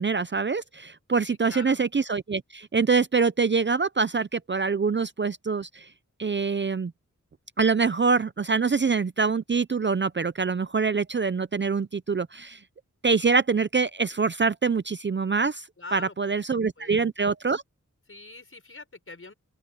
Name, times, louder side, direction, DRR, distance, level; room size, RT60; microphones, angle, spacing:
voice 1, 0.0-5.9 6.2-6.9 7.6-12.6 13.0-15.6 15.9-17.6, right 5 dB, 35° right, 0.5 m, -25 dB
voice 2, 1.3-1.8 15.8-17.0 18.1-19.3, left 3 dB, 45° left, 5.5 m, -44 dB
open air
wide cardioid pair, 80°, 31 cm